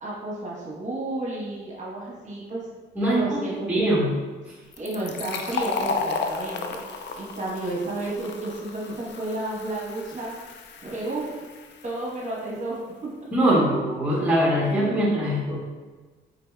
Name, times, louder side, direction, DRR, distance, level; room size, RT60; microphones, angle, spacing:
voice 1, 0.0-2.7 3.0-4.0 4.8-6.8 7.2-10.3 10.8-11.3 11.8-13.1 13.4-13.6, right 2 dB, 35° right, -5 dB, 1.2 m, -31 dB
voice 2, 3.7-4.1 13.3-15.5, right 1 dB, 5° right, -5 dB, 1.1 m, -22 dB
Fill (with liquid), 4.7-12.1, left 5 dB, 60° left, 0.4 m, -33 dB
4.0 x 3.8 x 2.3 m, 1.3 s
cardioid pair, 90°, 20 cm